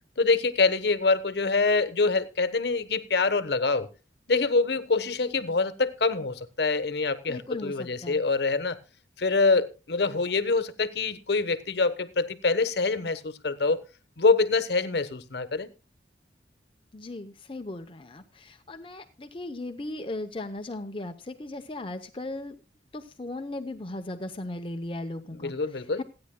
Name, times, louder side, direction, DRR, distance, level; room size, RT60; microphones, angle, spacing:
voice 1, 0.2-3.9 4.3-8.8 9.2-13.8 14.2-15.7 25.3-26.0, left 3 dB, 65° left, 1.1 m, -25 dB
voice 2, 7.3-8.2 16.9-22.6 22.9-25.5 26.0-26.1, left 2 dB, 30° left, 0.7 m, -37 dB
27.0 x 9.6 x 2.2 m
head